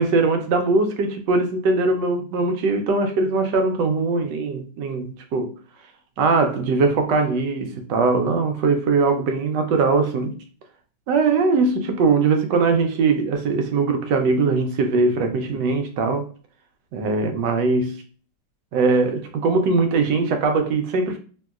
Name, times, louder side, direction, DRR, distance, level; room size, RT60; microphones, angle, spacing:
voice 1, 0.0-5.5 6.2-10.4 11.1-16.3 16.9-18.0 18.7-21.2, right 3 dB, 80° right, 1.2 m, -21 dB
3.0 x 2.7 x 2.3 m
omnidirectional pair, 1.9 m